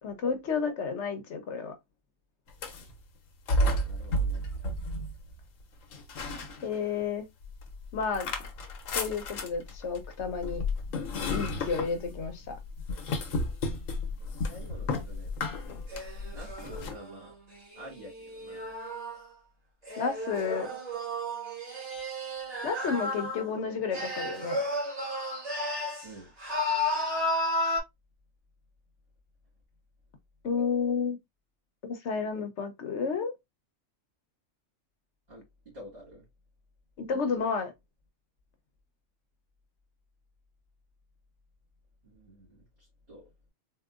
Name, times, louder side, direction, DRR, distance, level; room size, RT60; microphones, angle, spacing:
voice 1, 0.0-1.7 6.6-7.3 7.9-8.3 8.9-10.6 11.3-12.6 20.0-20.7 22.6-24.6 30.4-31.2 31.8-33.3 37.0-37.7, left 5 dB, 65° left, 1.0 m, -31 dB
sound 1, 2.5-3.0 3.5-5.4 5.9-7.0 7.4-17.0, left 1 dB, 90° left, 1.1 m, -32 dB
voice 2, 3.7-4.5 14.2-15.6 16.2-17.4 17.7-18.8 26.0-26.4 35.3-36.3 42.0-43.3, right 1 dB, 50° right, 1.9 m, -49 dB
sound 2, 15.9-19.2 19.8-23.5 23.9-26.1 26.4-27.8, left 1 dB, 30° right, 1.6 m, -33 dB
3.7 x 2.5 x 2.4 m
omnidirectional pair, 1.3 m